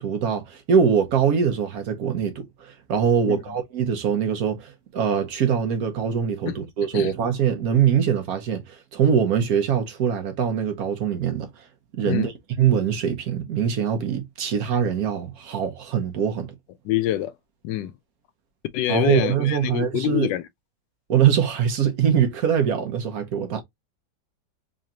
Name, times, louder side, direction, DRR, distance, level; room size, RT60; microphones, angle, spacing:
voice 1, 0.0-11.5 11.9-12.3 12.6-16.5 18.9-20.3 21.1-23.6, right 8 dB, 60° right, 1.3 m, -23 dB
voice 2, 16.8-17.3 17.6-17.9 18.7-20.4, left 13 dB, 85° left, 1.2 m, -25 dB
3.7 x 3.2 x 2.7 m
omnidirectional pair, 1.9 m